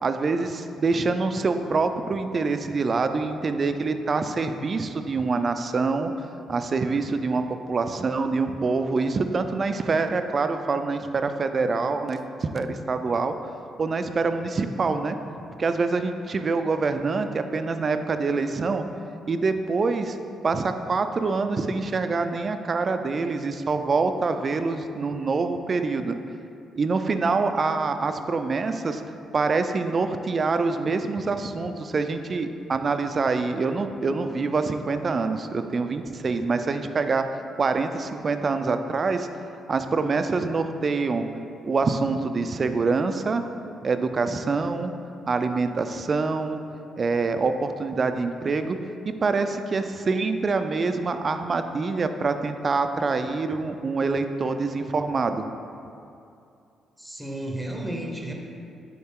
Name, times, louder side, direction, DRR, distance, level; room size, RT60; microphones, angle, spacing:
voice 1, 0.0-13.3 13.8-15.2 15.6-18.8 19.3-20.2 20.4-26.2 26.8-29.0 29.3-39.3 39.7-41.2 41.6-43.4 43.8-44.9 45.3-46.6 47.0-48.8 49.0-55.5, right 4 dB, 40° right, 8 dB, 0.4 m, -25 dB
voice 2, 57.0-58.3, right 1 dB, 5° right, 1 dB, 0.8 m, -32 dB
8.6 x 3.9 x 3.7 m, 2.6 s
cardioid pair, 95°, 0 cm